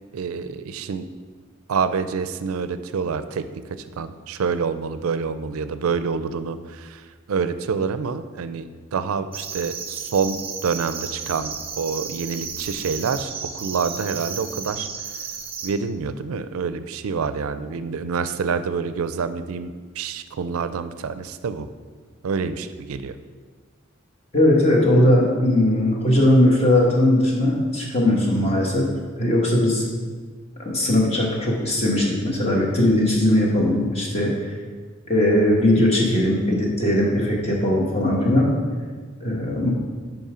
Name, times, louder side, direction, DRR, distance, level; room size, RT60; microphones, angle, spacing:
voice 1, 0.1-1.1 1.7-3.5 4.0-14.9 15.6-21.7 22.2-23.2, right 5 dB, 85° right, 12 dB, 0.4 m, -27 dB
sound 1, 9.3-15.7, right 6 dB, 25° right, 0.6 m, -33 dB
voice 2, 24.3-28.9 29.2-29.8 30.6-34.3 35.1-38.5 39.2-39.7, left 1 dB, 30° left, -2 dB, 1.2 m, -19 dB
5.4 x 5.4 x 5.0 m, 1.5 s
head